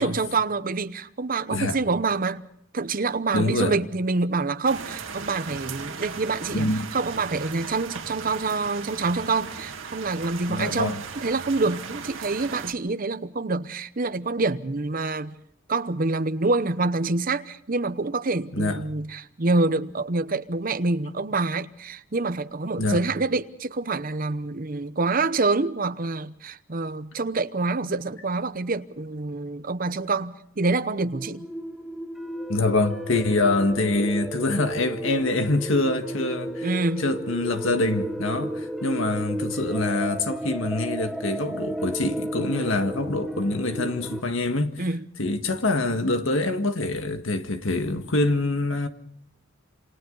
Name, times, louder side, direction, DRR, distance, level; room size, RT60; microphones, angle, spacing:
voice 1, 0.0-2.4 2.7-15.3 15.7-31.5 36.6-37.0 44.8-45.0, right 3 dB, 45° right, 0.8 m, -26 dB
voice 2, 3.3-3.8 6.5-6.9 10.5-11.0 18.5-18.8 22.8-23.0 32.5-44.9 45.2-48.9, left 2 dB, 75° left, 1.7 m, -25 dB
sound 1, 4.6-12.7, right 5 dB, 75° right, 2.1 m, -37 dB
sound 2, 31.1-44.2, right 1 dB, ahead, 0.9 m, -33 dB
28.0 x 25.5 x 4.0 m
head